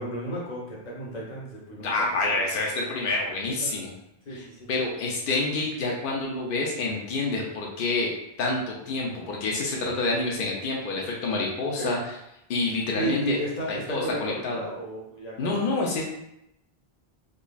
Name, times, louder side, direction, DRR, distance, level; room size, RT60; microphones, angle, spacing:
voice 1, 0.0-2.6 3.6-3.8 4.3-4.7 11.6-12.0 12.9-15.6, right 1 dB, 40° left, -4 dB, 1.0 m, -33 dB
voice 2, 1.8-3.9 4.3-8.1 8.4-12.1 12.5-13.4 13.7-14.6 15.4-16.0, left 3 dB, 60° left, -2 dB, 0.7 m, -28 dB
3.8 x 3.0 x 2.3 m, 0.82 s
omnidirectional pair, 1.1 m